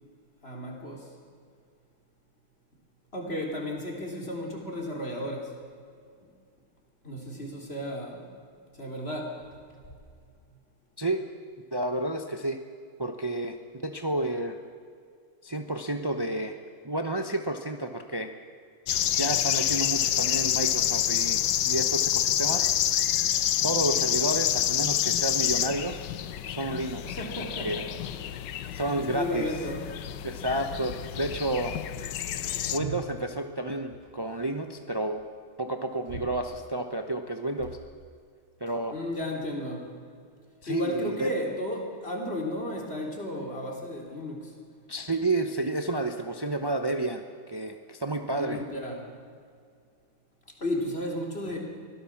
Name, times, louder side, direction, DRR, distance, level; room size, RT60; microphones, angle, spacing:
voice 1, 0.4-1.1 3.1-5.6 6.2-6.3 7.0-8.2 8.7-9.4 9.7-9.8 27.0-28.5 29.0-29.8 32.2-33.0 34.4-34.5 36.1-36.2 38.9-39.9 40.7-44.5 48.3-49.1 50.6-51.6, left 1 dB, 30° left, 0 dB, 3.8 m, -34 dB
voice 2, 11.7-12.6 13.0-13.6 13.8-14.6 15.4-16.6 16.8-18.3 19.1-22.7 23.6-26.0 26.5-27.8 28.7-29.5 30.2-31.8 32.7-35.2 35.6-37.8 38.6-39.0 40.6-41.3 44.9-48.6, right 2 dB, 35° right, 6 dB, 0.4 m, -30 dB
sound 1, 18.9-32.8, left 11 dB, 65° left, 1.3 m, -28 dB
24.0 x 16.5 x 7.3 m, 2.2 s
omnidirectional pair, 2.3 m